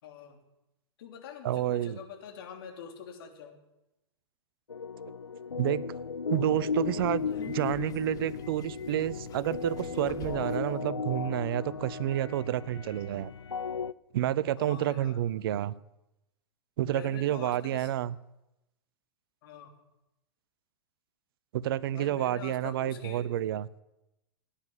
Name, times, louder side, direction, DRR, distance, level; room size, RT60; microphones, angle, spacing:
voice 1, 0.0-0.4 1.0-3.6 14.6-15.3 16.9-17.9 19.4-19.7 21.9-23.3, left 7 dB, 55° left, 4 dB, 3.2 m, -45 dB
voice 2, 1.4-2.0 5.6-5.8 6.3-13.3 14.1-15.7 16.8-18.2 21.5-23.7, right 12 dB, 55° right, 20 dB, 0.7 m, -29 dB
sound 1, 4.7-13.9, left 5 dB, 85° left, 0.5 m, -36 dB
Subway metro underground, 6.6-10.8, left 11 dB, 25° left, 0.6 m, -49 dB
17.5 x 10.0 x 7.5 m, 0.92 s
figure-of-eight pair, 100°, 14 cm